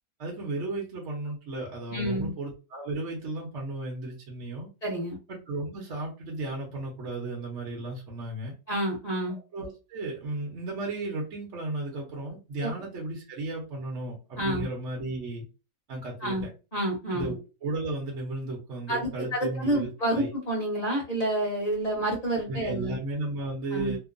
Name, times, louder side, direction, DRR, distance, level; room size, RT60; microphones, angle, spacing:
voice 1, 0.2-4.7 5.3-8.5 9.3-15.4 15.9-16.4 17.1-20.3 22.5-24.0, right 2 dB, 55° right, -2 dB, 1.0 m, -34 dB
voice 2, 1.9-2.3 4.8-5.2 8.7-9.4 12.6-12.7 14.4-14.6 16.2-16.4 16.7-17.3 18.9-23.0 23.7-24.0, right 1 dB, 30° left, -2 dB, 0.9 m, -29 dB
2.8 x 2.1 x 2.5 m, 0.31 s
omnidirectional pair, 1.7 m